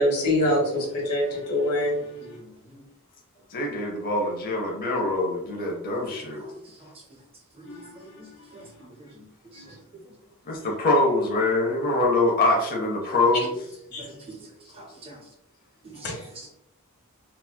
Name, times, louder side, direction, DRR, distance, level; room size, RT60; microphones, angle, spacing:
voice 1, 0.0-1.9 7.6-7.8 13.9-14.0 16.0-16.1, left 1 dB, 85° left, -2 dB, 1.4 m, -24 dB
voice 2, 1.6-2.8 6.4-6.5 8.2-8.3 8.5-9.3 9.5-9.6 14.0-14.3 14.8-15.2 16.4-16.5, right 2 dB, 25° right, 0 dB, 0.7 m, -46 dB
voice 3, 3.5-6.4 10.5-13.5, left 2 dB, 40° left, -1 dB, 0.7 m, -24 dB
4.1 x 2.2 x 2.2 m, 0.79 s
head